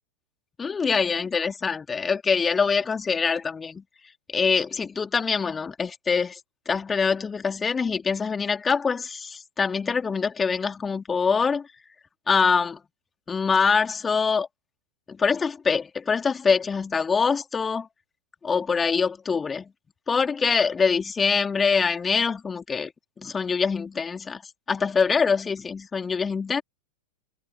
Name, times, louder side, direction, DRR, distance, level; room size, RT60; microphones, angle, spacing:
voice 1, 0.6-3.8 4.3-6.4 6.7-11.7 12.3-12.8 13.3-14.5 15.1-17.9 18.4-19.7 20.1-22.9 23.2-24.4 24.7-26.6, left 5 dB, 15° left, 2.9 m, -24 dB
figure-of-eight pair, 90°, 0 cm